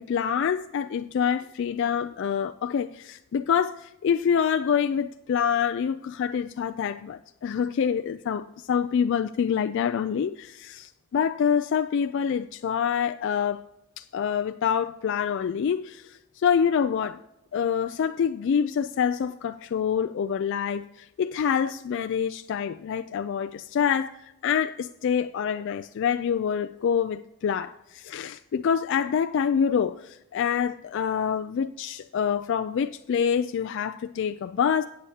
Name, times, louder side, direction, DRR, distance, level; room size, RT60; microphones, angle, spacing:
voice 1, 0.0-13.6 14.0-17.2 17.5-34.9, left 7 dB, 55° left, 0.3 m, -26 dB
14.5 x 8.4 x 2.8 m
head